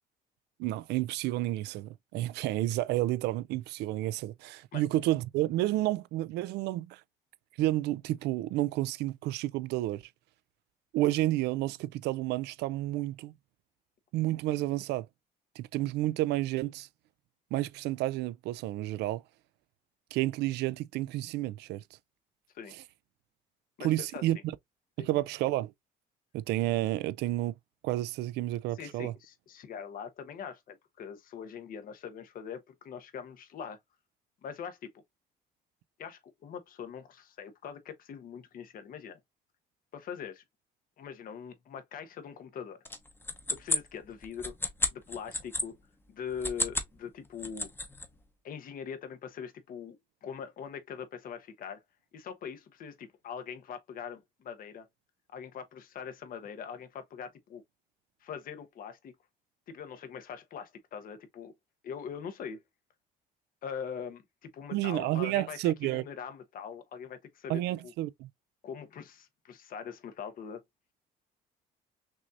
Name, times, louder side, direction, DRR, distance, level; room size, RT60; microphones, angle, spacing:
voice 1, 0.6-7.0 7.6-10.0 10.9-13.4 14.1-15.1 15.6-16.9 17.5-19.2 20.1-21.8 23.8-24.4 25.0-25.7 26.3-27.5 27.8-29.1 64.7-66.0 67.5-68.3, right 15 dB, 80° right, 0.4 m, -30 dB
voice 2, 23.8-24.2 25.0-25.1 28.7-33.8 34.4-34.9 36.0-39.2 39.9-40.4 41.0-42.8 43.5-44.6 44.9-45.8 46.1-47.7 48.4-51.8 52.1-54.9 55.3-57.6 58.2-59.1 59.7-61.5 61.8-62.6 63.6-67.9 68.6-70.6, left 7 dB, 55° left, 1.1 m, -42 dB
sound 1, 42.9-45.7 46.3-46.9 47.3-48.1, left 2 dB, 15° left, 0.9 m, -32 dB
6.1 x 2.8 x 2.4 m
cardioid pair, 110°, 17 cm